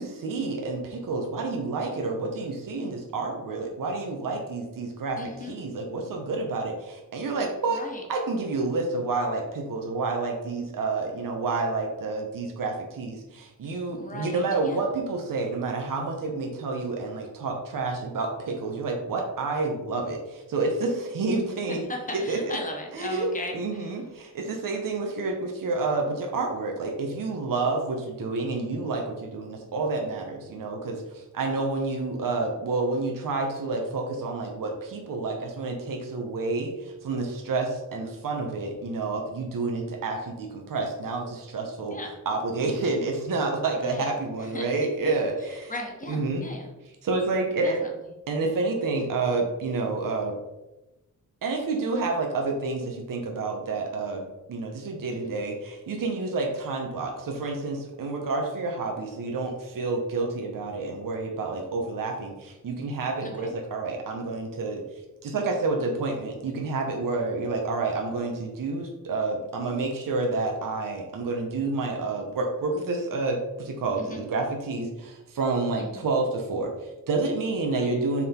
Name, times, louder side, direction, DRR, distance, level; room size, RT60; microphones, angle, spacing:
voice 1, 0.0-7.8 8.1-21.8 22.1-22.6 22.9-23.3 23.5-42.0 42.2-45.7 46.1-46.4 47.0-47.8 48.3-50.3 51.4-64.8 65.2-78.2, right 3 dB, 80° right, 1 dB, 1.1 m, -29 dB
voice 2, 5.2-5.6 7.7-8.0 13.9-14.8 21.7-23.9 41.9-42.1 43.7-44.1 44.4-44.7 45.7-46.7 47.6-47.9 55.2-55.3 63.2-63.5 74.0-74.2 75.8-76.1 77.6-77.9, left 2 dB, 25° left, 1 dB, 1.3 m, -37 dB
6.1 x 3.8 x 4.4 m, 1.0 s
wide cardioid pair, 140°, 33 cm